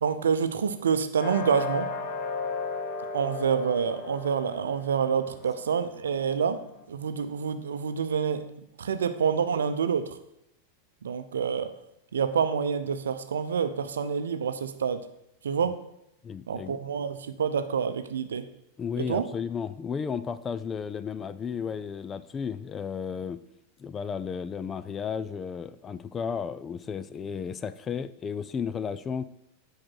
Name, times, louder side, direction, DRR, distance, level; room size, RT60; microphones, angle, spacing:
voice 1, 0.0-1.9 3.1-8.5 8.8-10.2 11.0-11.7 12.1-15.1 15.4-15.8 16.5-18.5 19.0-19.3, right 6 dB, 65° right, 11 dB, 0.6 m, -27 dB
sound 1, 1.2-6.8, left 4 dB, 40° left, 1.4 m, -35 dB
voice 2, 16.2-16.8 18.8-23.4 23.8-29.2, left 6 dB, 20° left, 14 dB, 0.4 m, -33 dB
8.6 x 4.8 x 6.2 m, 0.81 s
figure-of-eight pair, 90°, 0 cm